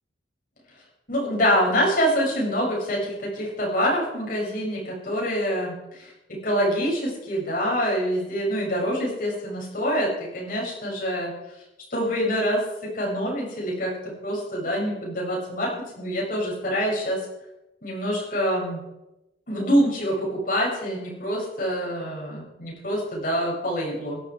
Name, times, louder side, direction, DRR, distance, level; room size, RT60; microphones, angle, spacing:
voice 1, 1.1-11.3 11.9-12.6 12.9-14.0 14.2-17.2 17.8-18.8 19.5-24.2, equal, 50° left, -4 dB, 7.8 m, -25 dB
17.0 x 13.0 x 5.1 m, 0.95 s
head